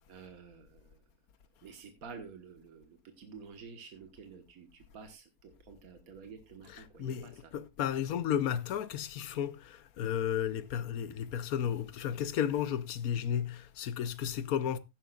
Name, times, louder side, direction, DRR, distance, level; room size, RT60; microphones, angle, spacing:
voice 1, 0.1-1.0 1.6-7.5, right 5 dB, 70° right, 1.9 m, -50 dB
voice 2, 6.7-14.8, left 9 dB, 75° left, 1.3 m, -33 dB
16.0 x 10.5 x 2.4 m
omnidirectional pair, 1.6 m